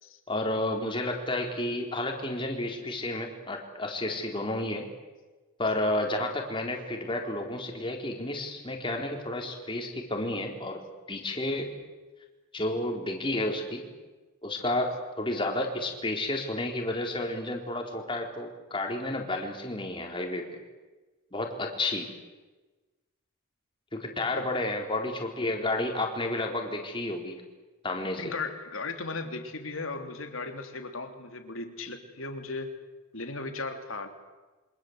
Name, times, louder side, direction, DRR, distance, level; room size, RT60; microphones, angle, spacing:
voice 1, 0.3-4.8 5.6-10.8 11.1-11.7 12.5-13.8 14.4-20.6 21.3-22.1 23.9-27.4 27.8-28.3, left 1 dB, 25° left, 2 dB, 4.2 m, -31 dB
voice 2, 28.2-32.8 33.1-34.1, left 3 dB, 75° left, 5 dB, 3.5 m, -36 dB
28.0 x 25.5 x 8.2 m, 1.2 s
head